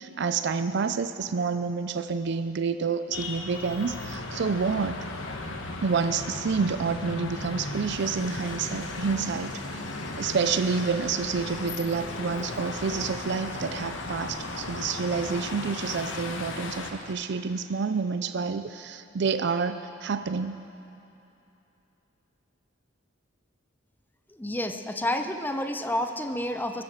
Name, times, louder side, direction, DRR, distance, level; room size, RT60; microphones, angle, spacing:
voice 1, 0.0-5.0 5.8-9.8 10.2-20.6, right 5 dB, 60° right, 10 dB, 0.4 m, -28 dB
sound 1, 3.1-16.9, left 2 dB, 80° left, 1.2 m, -36 dB
Idling, 8.0-17.1, left 3 dB, 40° left, 1.0 m, -47 dB
voice 2, 24.3-26.8, left 1 dB, 10° left, 6 dB, 0.6 m, -30 dB
21.0 x 7.9 x 7.3 m, 2.9 s
head